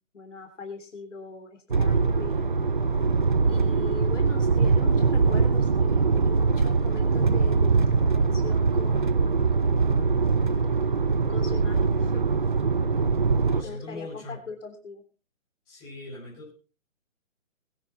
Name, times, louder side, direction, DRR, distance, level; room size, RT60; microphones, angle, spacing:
voice 1, 0.1-2.6 3.5-9.1 9.6-10.3 11.3-12.3 13.6-15.0, left 4 dB, 65° left, 5 dB, 3.4 m, -41 dB
sound 1, 1.7-13.6, right 4 dB, 40° right, 0.8 m, -22 dB
voice 2, 13.5-14.4 15.7-16.5, left 2 dB, 15° left, -5 dB, 5.7 m, -40 dB
21.0 x 9.8 x 4.3 m, 0.34 s
hypercardioid pair, 175°, 40 cm